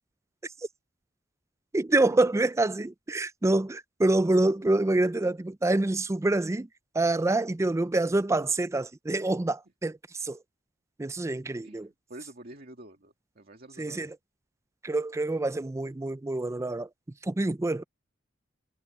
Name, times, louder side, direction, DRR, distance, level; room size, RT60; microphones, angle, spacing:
voice 1, 1.7-6.7 6.9-10.0 10.2-10.4 11.0-11.9 13.8-14.1 14.8-16.9 17.3-17.8, right 2 dB, 15° right, 0.4 m, -26 dB
voice 2, 11.6-14.1, right 1 dB, 50° right, 2.2 m, -48 dB
head